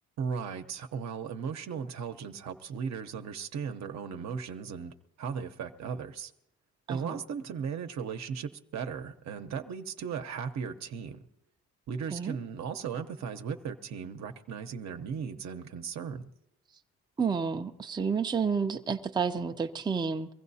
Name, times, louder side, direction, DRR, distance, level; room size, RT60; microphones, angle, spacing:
voice 1, 0.2-6.3 6.9-11.2 11.9-16.3, right 6 dB, 65° right, 6 dB, 0.9 m, -37 dB
voice 2, 6.9-7.2 12.1-12.4 17.2-20.3, right 5 dB, 15° right, 5 dB, 0.5 m, -30 dB
23.0 x 15.5 x 2.7 m, 0.86 s
cardioid pair, 90°, 30 cm